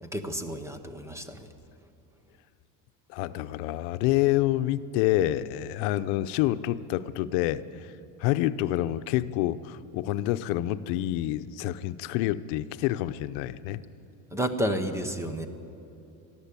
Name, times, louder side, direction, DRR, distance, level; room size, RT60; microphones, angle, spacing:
voice 1, 0.0-1.5 14.3-15.5, equal, 5° right, 8 dB, 0.7 m, -31 dB
voice 2, 3.1-7.9 8.2-13.8, left 14 dB, 85° left, 13 dB, 0.8 m, -27 dB
22.0 x 14.0 x 8.4 m, 2.8 s
cardioid pair, 175°, 41 cm